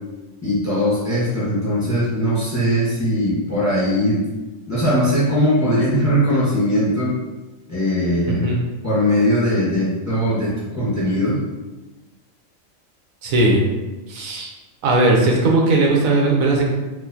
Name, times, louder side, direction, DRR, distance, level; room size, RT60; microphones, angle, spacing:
voice 1, 0.4-4.2 4.7-7.1 7.7-8.5 8.8-11.4, equal, 15° left, -9 dB, 1.0 m, -20 dB
voice 2, 8.3-8.6 13.2-13.6 14.1-14.5 14.8-16.7, right 2 dB, 85° right, -1 dB, 1.1 m, -17 dB
4.1 x 2.4 x 2.7 m, 1.1 s
omnidirectional pair, 1.4 m